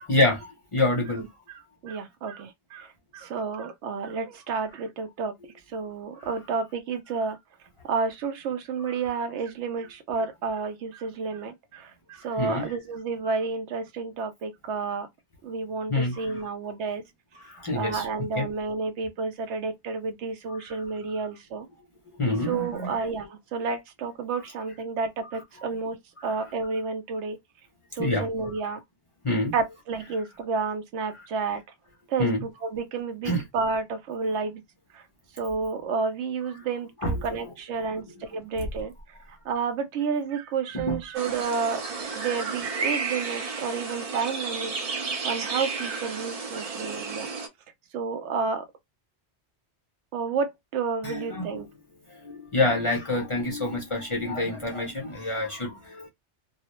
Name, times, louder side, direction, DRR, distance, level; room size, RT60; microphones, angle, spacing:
voice 1, 0.0-1.2 12.4-12.7 15.9-16.3 17.5-18.1 18.4-18.5 20.6-20.7 22.2-22.9 26.2-26.3 28.0-28.3 29.2-29.5 31.1-31.2 32.2-32.4 33.2-33.4 37.0-37.1 37.4-37.5 40.7-41.0 51.0-51.6 52.1-56.1, left 2 dB, 40° left, 0.5 m, -27 dB
voice 2, 1.1-5.3 5.7-7.4 7.8-15.1 15.4-17.0 17.7-21.7 22.5-26.0 26.2-27.4 27.9-28.8 29.5-31.6 32.1-34.6 34.9-35.0 35.4-38.9 39.4-47.3 47.9-48.7 50.1-51.7, right 4 dB, 80° right, 0.9 m, -31 dB
sound 1, 41.1-47.5, right 4 dB, 50° right, 0.4 m, -32 dB
2.3 x 2.0 x 2.8 m
omnidirectional pair, 1.2 m